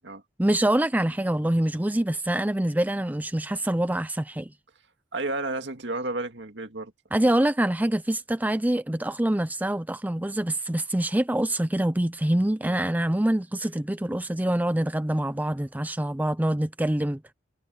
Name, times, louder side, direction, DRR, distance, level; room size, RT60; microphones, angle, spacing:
voice 1, 0.4-4.5 7.1-17.2, right 1 dB, 10° right, 0.5 m, -25 dB
voice 2, 5.1-6.9 12.6-12.8, right 2 dB, 65° right, 2.3 m, -32 dB
head